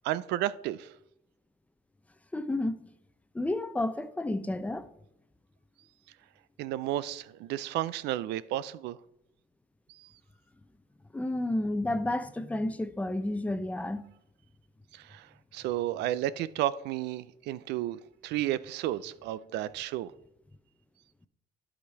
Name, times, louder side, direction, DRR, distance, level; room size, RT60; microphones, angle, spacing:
voice 1, 0.0-0.9 6.6-9.0 10.0-10.1 14.9-15.3 15.5-20.1, right 13 dB, 85° right, 0.5 m, -32 dB
voice 2, 2.3-2.9 3.3-4.9 11.1-14.0, left 1 dB, 10° left, 0.6 m, -31 dB
11.5 x 5.1 x 4.6 m
cardioid pair, 110°, 17 cm